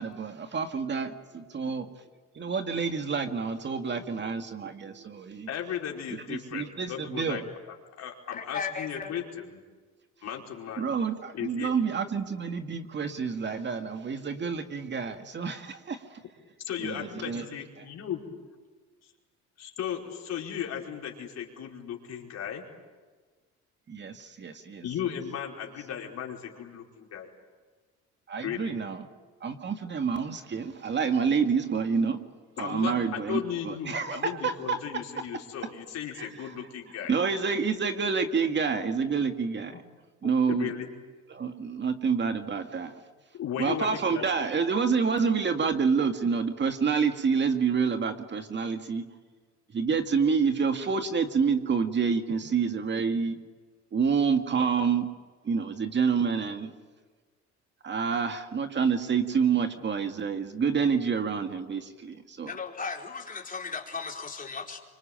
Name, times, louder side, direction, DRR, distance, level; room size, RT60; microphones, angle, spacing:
voice 1, 0.0-1.9 2.4-5.5 6.3-7.4 10.8-16.2 16.8-17.4 23.9-24.8 28.3-29.0 29.4-32.2 32.6-34.8 36.2-36.3 37.1-39.8 40.2-40.7 41.3-42.9 43.6-49.0 49.7-53.4 53.9-55.1 55.4-56.7 57.8-62.5, right 5 dB, 35° right, 7 dB, 2.1 m, -28 dB
voice 2, 5.5-9.6 10.2-10.9 11.3-11.7 16.7-18.2 19.6-22.6 24.8-27.3 28.4-28.7 32.6-37.1 40.5-40.9 43.3-44.3, left 9 dB, 60° left, 0 dB, 5.0 m, -36 dB
voice 3, 8.3-9.1 39.7-39.8 62.5-64.8, left 5 dB, 30° left, 1 dB, 4.6 m, -36 dB
25.0 x 24.5 x 9.1 m, 1.4 s
cardioid pair, 100°, 30 cm